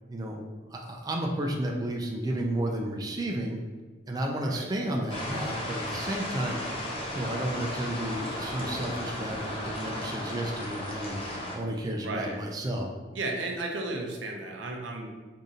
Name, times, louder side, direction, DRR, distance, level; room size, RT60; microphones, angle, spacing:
voice 1, 0.1-0.4 0.7-3.6 4.1-12.9, right 1 dB, 20° right, 0 dB, 0.3 m, -32 dB
sound 1, 5.1-11.6, left 1 dB, 30° left, 0.7 m, -35 dB
voice 2, 12.0-12.4 13.1-15.1, right 2 dB, 75° right, 2 dB, 0.6 m, -34 dB
4.9 x 2.6 x 2.7 m, 1.3 s
head